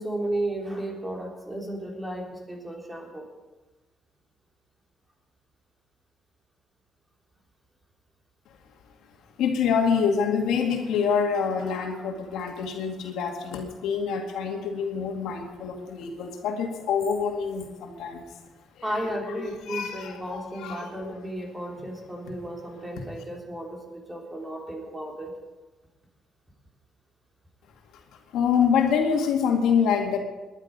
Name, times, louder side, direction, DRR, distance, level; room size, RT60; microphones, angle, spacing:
voice 1, 0.0-3.3 11.9-12.0 18.8-25.3, right 1 dB, 10° right, 0 dB, 3.5 m, -34 dB
voice 2, 9.4-18.3 19.4-21.1 22.9-23.0 28.3-30.2, left 6 dB, 90° left, 3 dB, 2.1 m, -26 dB
19.5 x 11.0 x 5.3 m, 1.2 s
cardioid pair, 105°, 0 cm